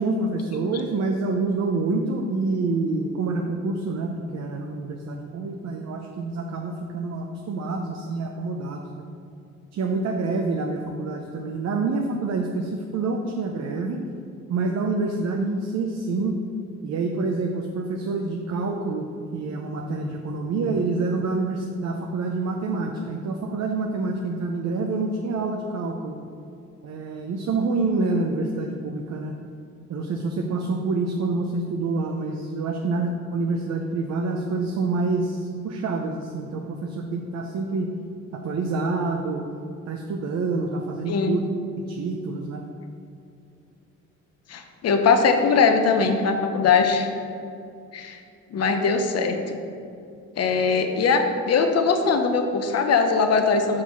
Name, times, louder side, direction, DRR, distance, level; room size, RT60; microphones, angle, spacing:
voice 1, 0.0-9.0 9.7-14.0 14.5-16.4 16.8-19.1 19.3-26.2 26.8-29.4 29.9-37.9 38.3-39.4 39.9-41.4 41.9-42.6, right 3 dB, 60° right, 2 dB, 0.7 m, -27 dB
voice 2, 41.1-41.4 44.5-47.1 47.9-48.2 48.5-49.6 50.4-53.8, left 5 dB, 55° left, 5 dB, 0.9 m, -21 dB
6.3 x 4.9 x 5.7 m, 2.5 s
cardioid pair, 90°, 30 cm